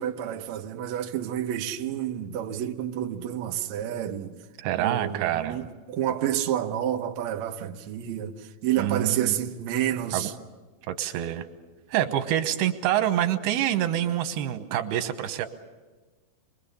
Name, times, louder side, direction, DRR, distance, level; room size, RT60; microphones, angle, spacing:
voice 1, 0.0-4.3 4.8-10.3, right 11 dB, 65° right, 1.8 m, -29 dB
voice 2, 4.6-5.7 8.8-9.3 10.1-10.3 10.9-11.4 11.9-15.5, right 11 dB, 90° right, 3.0 m, -26 dB
25.0 x 21.5 x 6.9 m
omnidirectional pair, 4.4 m